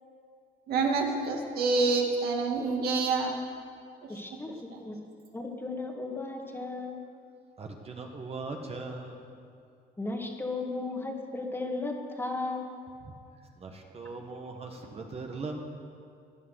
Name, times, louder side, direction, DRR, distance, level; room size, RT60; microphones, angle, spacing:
voice 1, 0.7-3.3 4.7-4.8, right 3 dB, 65° right, 1 dB, 2.2 m, -27 dB
voice 2, 4.1-4.6 4.8-5.0 5.3-7.0 10.0-12.7, left 3 dB, 15° left, 1 dB, 2.0 m, -35 dB
voice 3, 7.6-9.3 13.6-15.6, right 3 dB, 35° right, 2 dB, 1.7 m, -39 dB
16.0 x 11.0 x 6.7 m, 2.4 s
cardioid pair, 110°, 17 cm